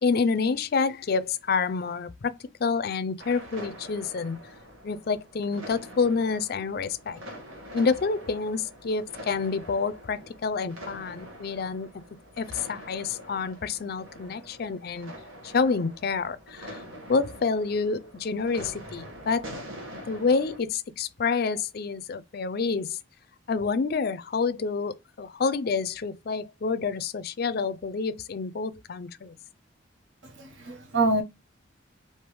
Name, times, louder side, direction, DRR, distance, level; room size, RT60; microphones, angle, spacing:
voice 1, 0.0-2.3 2.6-4.4 4.8-7.2 7.7-11.9 12.4-15.1 15.4-16.8 17.1-19.5 20.1-23.0 23.5-29.3, left 4 dB, 50° left, 0.4 m, -28 dB
sound 1, 3.2-20.6, equal, 85° right, 1.2 m, -44 dB
voice 2, 30.2-31.2, right 2 dB, 65° right, 0.9 m, -26 dB
3.4 x 2.7 x 4.6 m
head